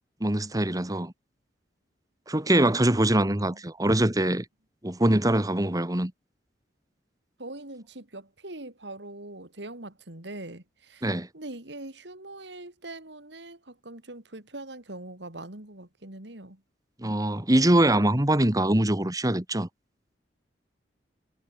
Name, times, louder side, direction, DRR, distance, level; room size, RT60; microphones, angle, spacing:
voice 1, 0.2-1.1 2.3-4.5 4.8-6.1 11.0-11.3 17.0-19.7, right 1 dB, 20° right, 1.7 m, -23 dB
voice 2, 7.4-16.6, right 2 dB, 70° right, 3.5 m, -42 dB
head